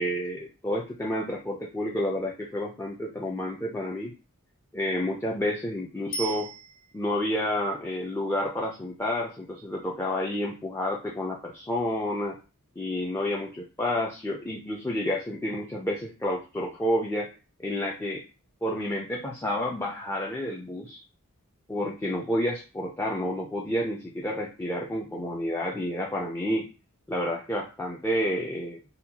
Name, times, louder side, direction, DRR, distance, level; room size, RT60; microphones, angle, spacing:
voice 1, 0.0-4.1 4.7-6.5 6.9-12.4 12.8-17.3 17.6-18.2 18.6-21.0 21.7-26.7 27.1-28.8, left 1 dB, 10° left, -2 dB, 0.4 m, -30 dB
Bicycle bell, 6.1-7.2 16.3-16.4, right 3 dB, 65° left, 0.6 m, -37 dB
4.2 x 2.2 x 2.8 m, 0.32 s
head